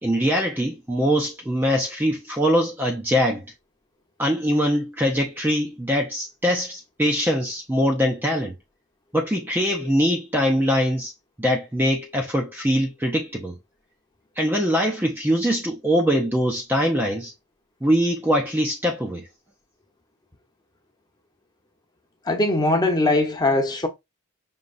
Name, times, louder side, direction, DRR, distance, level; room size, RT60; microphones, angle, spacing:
voice 1, 0.0-3.4 4.2-8.6 9.1-11.1 11.4-13.6 14.4-17.3 17.8-19.3, equal, 10° right, 0.6 m, -22 dB
voice 2, 22.3-23.9, left 2 dB, 20° left, 0.8 m, -21 dB
5.4 x 3.0 x 2.5 m
head